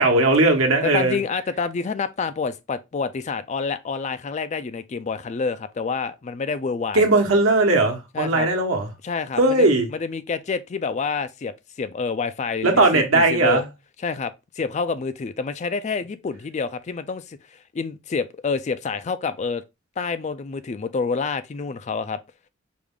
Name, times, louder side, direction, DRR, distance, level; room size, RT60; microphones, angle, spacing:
voice 1, 0.0-1.2 6.9-8.9 9.4-9.9 12.6-13.6, right 2 dB, 85° right, 1.2 m, -18 dB
voice 2, 0.8-7.1 8.1-8.5 9.0-13.6 14.0-19.6 20.0-22.2, left 5 dB, 35° left, 0.3 m, -28 dB
4.9 x 2.4 x 3.5 m
head